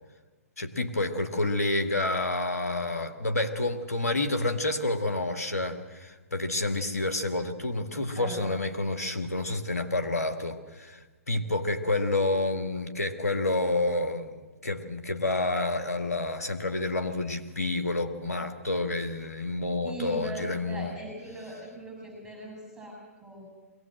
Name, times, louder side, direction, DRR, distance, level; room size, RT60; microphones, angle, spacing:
voice 1, 0.6-11.0 11.3-14.4 14.6-20.9, left 2 dB, 85° left, 7 dB, 1.9 m, -29 dB
voice 2, 8.2-8.5 19.8-23.5, right 1 dB, 5° right, 0 dB, 7.2 m, -40 dB
21.5 x 18.5 x 7.7 m, 1.2 s
figure-of-eight pair, 125°, 8 cm